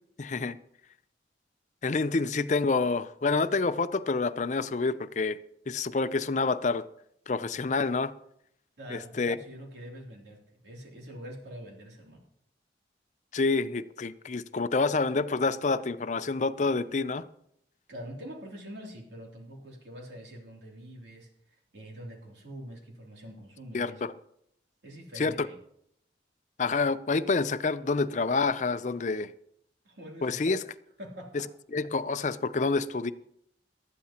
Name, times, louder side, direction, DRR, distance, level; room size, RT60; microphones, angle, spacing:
voice 1, 0.2-0.6 1.8-5.4 5.7-6.8 7.3-8.1 8.9-9.4 13.3-17.3 23.7-24.1 25.2-25.5 26.6-29.3 30.2-30.7 31.7-33.1, left 3 dB, 45° left, 0.5 m, -28 dB
voice 2, 8.8-12.2 17.9-24.0 24.8-25.6 29.8-30.5 31.0-31.5, equal, 80° right, 3.0 m, -45 dB
19.0 x 13.0 x 2.9 m
head